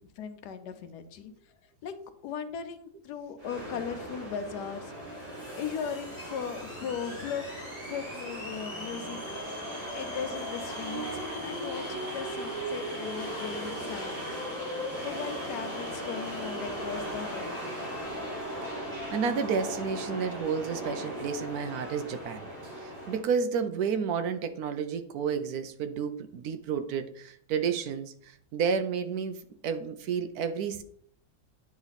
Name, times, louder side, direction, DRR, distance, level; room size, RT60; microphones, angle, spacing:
voice 1, 0.2-1.3 1.8-2.0 2.2-4.9 5.6-7.5 7.8-9.2 9.7-14.2 15.0-17.8, left 7 dB, 85° left, 9 dB, 1.3 m, -38 dB
sound 1, 3.4-23.3, equal, 50° right, 3.7 m, -37 dB
voice 2, 19.1-30.8, right 6 dB, 70° right, 9 dB, 1.1 m, -31 dB
9.5 x 3.2 x 4.1 m, 0.64 s
omnidirectional pair, 1.7 m